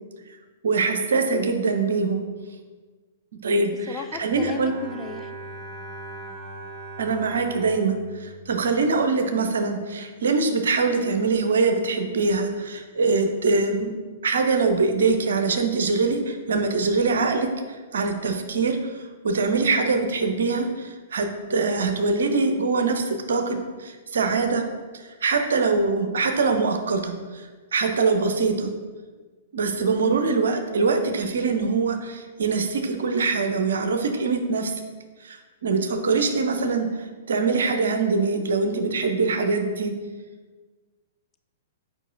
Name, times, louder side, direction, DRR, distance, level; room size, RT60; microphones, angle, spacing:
voice 1, 0.6-2.2 3.4-4.9 7.0-13.9 14.2-24.7 24.9-28.7 29.5-34.7 35.2-39.9, right 4 dB, 60° right, 6 dB, 0.6 m, -23 dB
voice 2, 3.9-5.3, left 5 dB, 20° left, 6 dB, 0.3 m, -35 dB
Bowed string instrument, 4.1-9.4, right 2 dB, 20° right, 1.0 m, -40 dB
7.3 x 5.0 x 2.6 m, 1.4 s
figure-of-eight pair, 110°, 0 cm